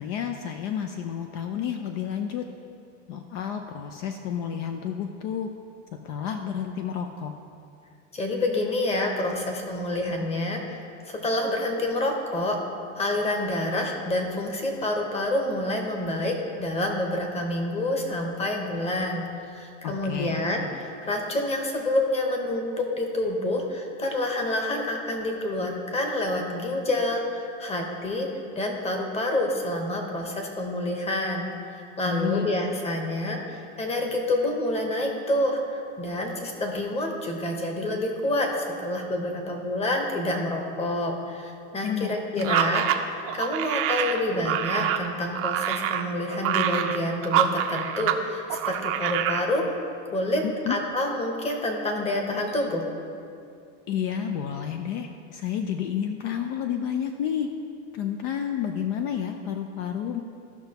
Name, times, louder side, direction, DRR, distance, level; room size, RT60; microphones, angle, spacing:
voice 1, 0.0-2.4 3.1-5.5 6.0-7.3 19.8-20.4 32.0-32.5 41.8-42.7 50.4-50.8 53.9-57.5 57.9-60.2, left 8 dB, 55° left, 6 dB, 0.6 m, -30 dB
voice 2, 8.1-10.8 11.1-12.6 13.0-28.3 28.5-42.9 43.3-49.6 50.1-52.8, left 1 dB, 15° left, 2 dB, 1.1 m, -28 dB
sound 1, 42.4-48.2 48.5-49.5, right 10 dB, 35° right, 0.6 m, -26 dB
15.0 x 5.8 x 2.9 m, 2.5 s
supercardioid pair, 135°, 37 cm